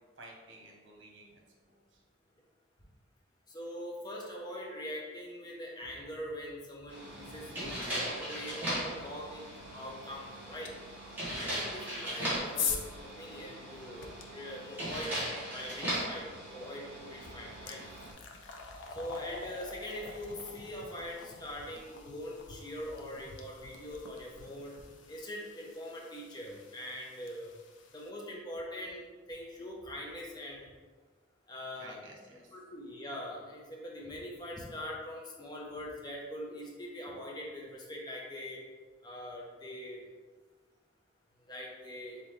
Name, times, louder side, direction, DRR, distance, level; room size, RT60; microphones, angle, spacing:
voice 1, 0.2-1.4 1.7-2.0 13.8-14.1 23.1-23.3 31.8-32.5, right 2 dB, 70° right, 0 dB, 1.0 m, -54 dB
voice 2, 3.5-10.7 11.4-17.9 18.9-24.8 25.1-27.5 27.9-30.7 31.5-32.0 32.3-38.6 39.0-40.0 41.5-42.2, left 1 dB, 20° left, -3 dB, 0.7 m, -43 dB
sound 1, 6.9-18.1, right 1 dB, 10° right, 1.4 m, -39 dB
sound 2, 10.6-10.7 11.8-14.2 16.5-16.7 17.1-28.1, left 6 dB, 75° left, 0.5 m, -43 dB
4.0 x 3.9 x 3.1 m, 1.4 s
head